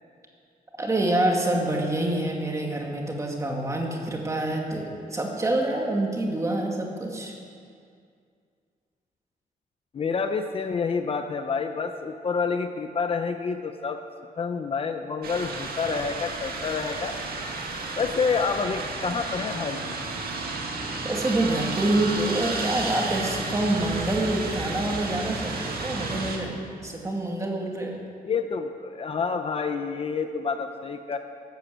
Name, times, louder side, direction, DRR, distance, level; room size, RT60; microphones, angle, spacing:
voice 1, 0.8-7.3 21.0-28.0, right 1 dB, 20° right, 0 dB, 2.1 m, -27 dB
voice 2, 9.9-14.0 14.4-17.2 18.0-20.0 28.2-31.2, left 5 dB, 35° left, 7 dB, 0.7 m, -28 dB
sound 1, 15.2-26.4, right 3 dB, 75° right, 2.0 m, -32 dB
14.0 x 11.5 x 8.0 m, 2.3 s
wide cardioid pair, 160°, 16 cm